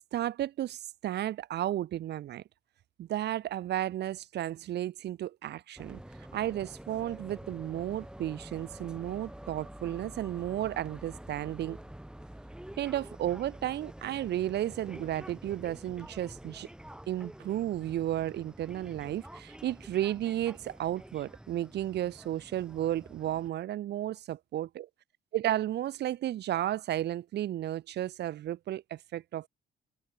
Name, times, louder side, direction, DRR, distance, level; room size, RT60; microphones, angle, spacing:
voice 1, 0.1-2.4 3.0-6.0 6.3-11.8 12.8-16.7 17.1-24.9 25.3-29.5, right 12 dB, 65° right, 0.7 m, -33 dB
sound 1, 5.8-23.5, right 1 dB, 5° right, 4.6 m, -48 dB
cardioid pair, 120°, 19 cm